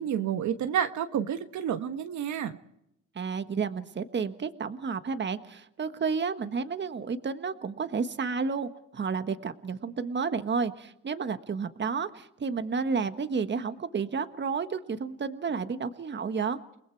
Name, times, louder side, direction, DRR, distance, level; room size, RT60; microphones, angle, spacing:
voice 1, 0.0-2.5, right 9 dB, 70° right, 8 dB, 1.3 m, -29 dB
voice 2, 3.1-16.6, right 5 dB, 35° right, 9 dB, 1.4 m, -31 dB
29.5 x 20.0 x 4.6 m, 0.80 s
cardioid pair, 90°, 30 cm